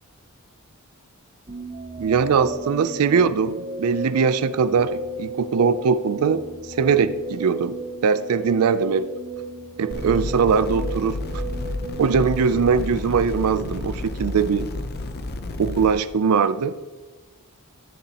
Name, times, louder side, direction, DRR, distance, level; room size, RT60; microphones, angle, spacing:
sound 1, 1.5-13.5, right 2 dB, 30° right, 0.6 m, -35 dB
voice 1, 2.0-6.4 6.8-9.1 9.8-11.4 12.0-14.7 15.6-16.7, right 6 dB, 75° right, 14 dB, 0.4 m, -21 dB
sound 2, 9.9-15.9, left 2 dB, 45° left, 0.7 m, -31 dB
11.0 x 10.0 x 2.9 m, 1.3 s
head